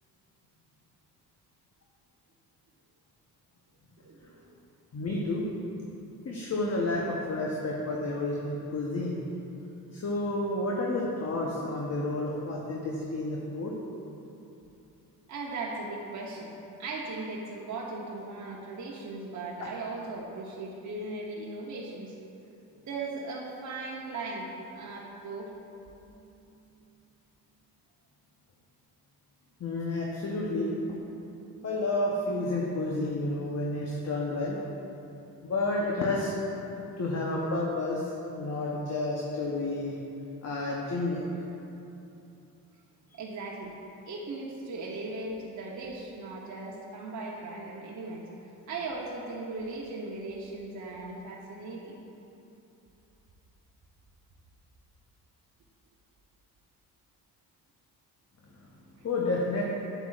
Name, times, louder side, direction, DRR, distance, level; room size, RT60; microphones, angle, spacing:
voice 1, 4.0-4.5 15.3-16.5 16.8-22.2 22.9-25.5 43.1-43.8 44.1-48.3 48.7-52.0 59.0-59.1, right 3 dB, 45° right, -3 dB, 1.0 m, -38 dB
voice 2, 4.9-5.5 6.2-9.2 9.9-13.7 19.6-19.7 26.1-26.2 29.6-30.7 31.3-34.6 35.4-36.3 37.0-39.9 40.4-41.3 58.6-58.7 59.0-59.6, left 2 dB, 40° left, -2 dB, 1.0 m, -30 dB
8.2 x 8.0 x 2.5 m, 2.8 s
supercardioid pair, 65°, 41 cm